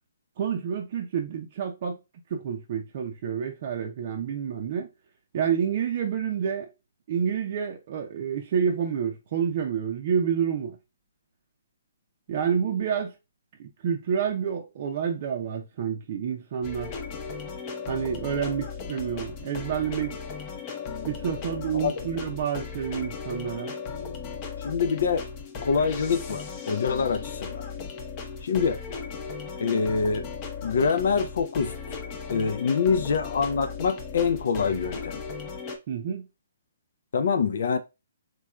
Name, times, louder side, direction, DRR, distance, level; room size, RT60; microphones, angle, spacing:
voice 1, 0.4-2.0 2.3-4.9 5.3-6.7 7.1-10.8 12.3-13.1 13.6-16.9 17.9-20.2 21.0-23.7 35.9-36.3, right 7 dB, 45° right, 0.5 m, -28 dB
sound 1, 16.6-35.8, left 5 dB, 30° left, 0.8 m, -36 dB
voice 2, 21.7-22.1 24.6-25.2 25.6-27.6 28.4-28.8 29.6-30.2 30.6-32.0 32.3-35.2 37.1-37.8, left 5 dB, 60° left, 0.5 m, -25 dB
3.7 x 3.0 x 2.3 m
figure-of-eight pair, 135°, 0 cm